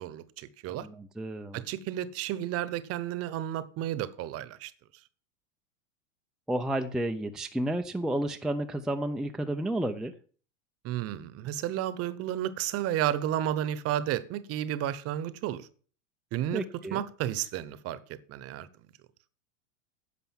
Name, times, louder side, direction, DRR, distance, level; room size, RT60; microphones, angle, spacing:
voice 1, 0.0-0.9 1.5-4.7 10.8-15.7 16.3-16.6 16.9-18.7, right 12 dB, 35° right, 1.1 m, -32 dB
voice 2, 0.7-1.6 6.5-10.1 16.5-17.0, right 1 dB, ahead, 0.6 m, -31 dB
10.5 x 6.8 x 7.3 m
supercardioid pair, 130°, 39 cm